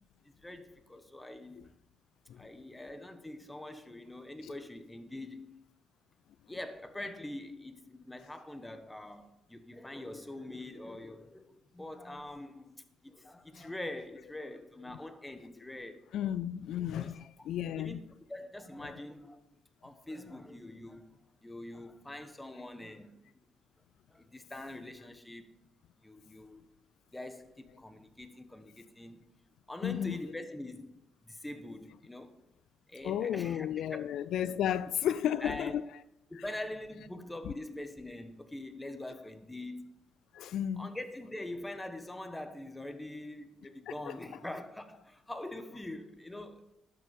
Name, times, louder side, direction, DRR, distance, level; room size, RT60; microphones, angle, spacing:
voice 1, 0.4-1.7 2.4-5.6 6.5-16.0 16.9-17.5 17.8-18.0 18.3-19.4 19.8-23.2 24.1-25.5 26.0-26.6 27.1-29.2 29.7-32.4 32.9-34.1 35.1-35.7 36.3-39.9 40.8-46.6, left 1 dB, 10° left, 1.2 m, -44 dB
voice 2, 16.1-18.0 29.8-30.2 33.0-35.8 40.3-40.9 43.9-44.2, left 10 dB, 75° left, 0.3 m, -33 dB
11.5 x 6.8 x 5.3 m
cardioid pair, 90°, 0 cm